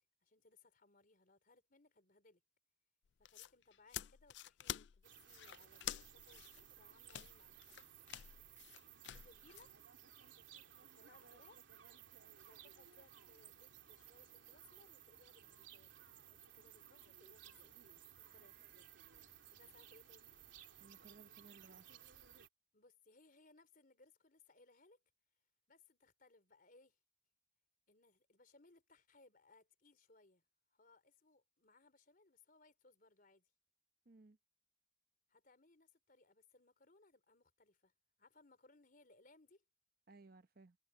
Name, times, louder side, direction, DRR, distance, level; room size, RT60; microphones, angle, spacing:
voice 1, 0.0-2.4 3.2-7.8 9.0-9.8 10.8-11.6 12.4-17.7 18.1-18.6 19.5-20.3 22.7-25.0 25.7-27.0 27.9-30.4 30.7-33.5 35.3-37.9 38.2-39.6, left 3 dB, 50° left, 3.8 m, -68 dB
sound 1, 3.1-9.7, left 12 dB, 65° left, 0.4 m, -49 dB
sound 2, 5.0-22.5, right 10 dB, 85° right, 2.8 m, -60 dB
voice 2, 20.8-21.8 34.1-34.4 40.1-40.8, right 3 dB, 50° right, 0.9 m, -61 dB
head